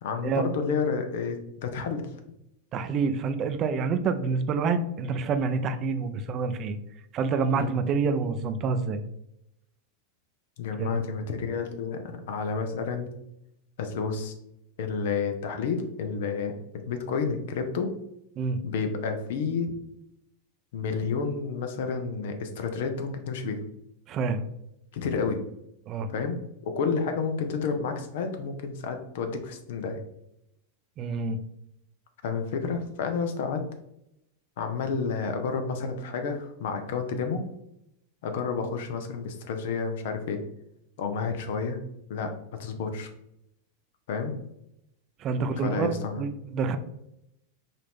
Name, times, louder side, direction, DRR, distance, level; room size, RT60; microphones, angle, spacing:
voice 1, 0.0-2.0 7.5-7.7 10.6-12.0 12.3-13.1 13.8-14.3 14.8-17.9 18.6-19.7 20.7-23.6 24.9-25.4 26.1-26.4 26.6-30.0 32.2-33.6 34.6-37.4 38.2-40.4 41.0-41.8 42.1-42.3 42.6-43.1 44.1-44.3 45.6-46.2, left 5 dB, 70° left, 6 dB, 0.8 m, -30 dB
voice 2, 2.7-6.8 7.1-9.0 10.8-11.0 18.4-18.6 24.1-24.4 25.9-26.1 31.0-31.4 45.2-46.8, right 5 dB, 40° right, 10 dB, 0.5 m, -27 dB
5.3 x 2.7 x 3.6 m, 0.81 s
hypercardioid pair, 105°, 0 cm